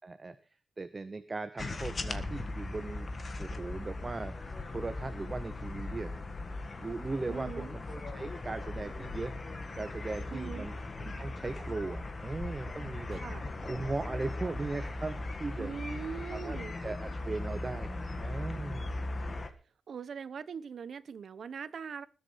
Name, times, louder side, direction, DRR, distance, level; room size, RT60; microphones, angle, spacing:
voice 1, 0.0-0.3 0.8-3.1 3.4-4.3 4.7-6.2 6.8-9.3 9.7-13.2 13.6-15.7 16.3-19.1, right 3 dB, 25° right, 11 dB, 0.9 m, -38 dB
sound 1, 1.6-19.5, left 2 dB, 30° left, 1.6 m, -39 dB
sound 2, 5.3-16.7, left 5 dB, 80° left, 3.5 m, -60 dB
voice 2, 7.3-7.7 10.3-10.7 13.1-13.4 15.6-16.8 19.9-22.1, right 6 dB, 60° right, 16 dB, 0.9 m, -41 dB
20.5 x 8.2 x 5.7 m, 0.36 s
wide cardioid pair, 170°, 0 cm